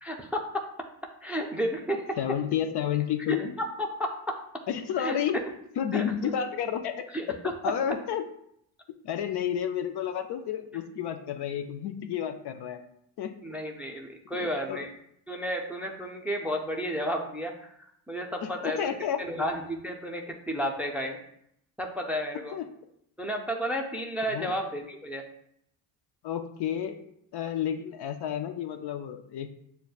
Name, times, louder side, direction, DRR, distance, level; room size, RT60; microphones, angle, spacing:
voice 1, 0.0-0.6 1.2-2.2 3.3-3.4 3.8-4.4 5.0-5.2 5.9-6.0 7.1-7.3 13.4-14.9 15.3-17.7 18.1-18.8 19.2-21.2 21.8-22.6 23.2-25.2, equal, 5° right, 2 dB, 0.4 m, -32 dB
voice 2, 2.2-3.6 4.7-5.4 5.8-7.1 7.4-8.3 9.0-12.8 13.2-13.4 14.3-14.9 18.4-19.2 22.5-22.7 24.3-24.6 26.2-27.0 27.3-29.5, left 9 dB, 55° left, 7 dB, 0.5 m, -31 dB
6.5 x 2.2 x 2.3 m, 0.73 s
supercardioid pair, 75°, 47 cm